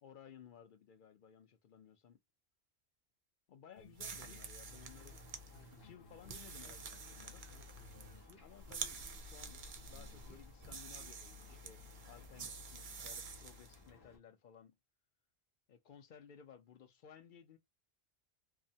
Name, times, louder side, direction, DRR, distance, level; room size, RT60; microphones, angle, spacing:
voice 1, 0.0-2.2 3.5-5.2 5.6-7.5 8.4-9.6 9.9-14.8 15.7-17.6, left 8 dB, 55° left, 0.6 m, -58 dB
sound 1, 3.8-4.4 4.7-4.8 5.1-5.2 5.5-7.2 7.5-8.4 8.7-10.4 10.7-11.1 11.5-11.6, left 3 dB, 70° left, 1.0 m, -61 dB
sound 2, 3.9-13.8, right 4 dB, 55° right, 0.6 m, -49 dB
Ocean, 4.6-14.2, left 3 dB, 20° left, 0.9 m, -63 dB
2.7 x 2.1 x 2.6 m
omnidirectional pair, 1.2 m